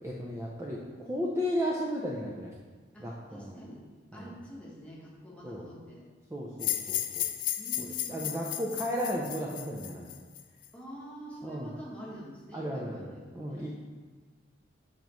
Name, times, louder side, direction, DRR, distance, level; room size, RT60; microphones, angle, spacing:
voice 1, 0.0-2.5 3.0-3.6 4.1-4.3 5.4-5.7 6.3-7.3 7.8-10.1 11.4-11.7 12.5-13.8, equal, 15° right, -4 dB, 0.5 m, -34 dB
voice 2, 2.9-6.1 7.6-8.4 10.7-13.7, right 1 dB, 5° left, -5 dB, 1.1 m, -47 dB
sound 1, 6.6-10.7, left 12 dB, 45° left, 0.3 m, -34 dB
7.3 x 5.1 x 3.0 m, 1.4 s
head